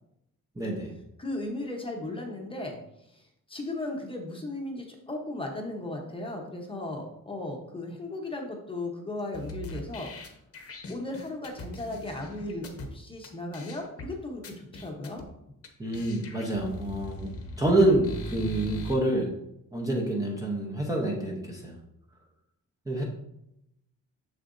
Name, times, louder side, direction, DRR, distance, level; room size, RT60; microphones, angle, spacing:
voice 1, 0.6-0.9 15.8-17.3 17.6-19.3 19.7-21.8 22.9-23.0, right 1 dB, 10° right, -2 dB, 0.8 m, -27 dB
voice 2, 1.2-2.8 3.5-10.1 10.9-15.2, left 2 dB, 15° left, 1 dB, 0.9 m, -36 dB
sound 1, 9.3-12.9 13.2-13.3 13.5-14.1 14.4-15.2 15.6-15.7 15.9-18.9, equal, 40° left, 1.0 m, -40 dB
7.1 x 6.6 x 2.6 m, 0.82 s
wide cardioid pair, 170°, 34 cm